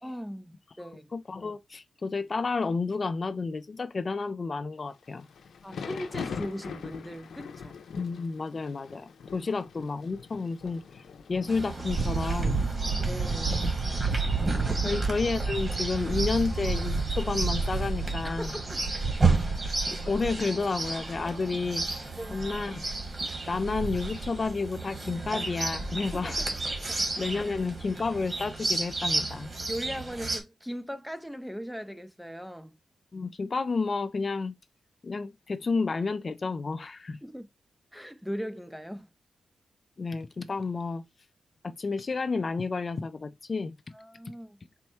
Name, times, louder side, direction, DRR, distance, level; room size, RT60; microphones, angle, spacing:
voice 1, 0.0-1.1 5.6-7.8 12.9-13.6 14.8-15.0 18.2-18.7 19.1-19.2 22.2-22.4 26.1-26.5 26.9-27.6 29.7-32.8 37.2-37.5 37.9-39.1 43.9-44.6, equal, ahead, 0.6 m, -39 dB
voice 2, 1.1-5.3 8.0-11.0 11.3-12.6 14.8-18.5 20.1-21.9 22.3-22.8 23.5-26.4 27.2-29.5 33.1-34.6 35.0-37.2 40.0-41.0 41.6-43.7, left 4 dB, 45° left, 0.4 m, -31 dB
Thunder / Rain, 5.0-18.1, left 6 dB, 80° left, 0.7 m, -44 dB
Chirp tweet, 11.5-30.4, right 3 dB, 40° right, 1.7 m, -32 dB
sound 1, 11.9-20.6 20.8-20.9 21.8-22.0 22.2-23.1 23.5-24.5, right 4 dB, 55° right, 0.6 m, -31 dB
4.3 x 2.2 x 4.3 m
cardioid pair, 75°, 0 cm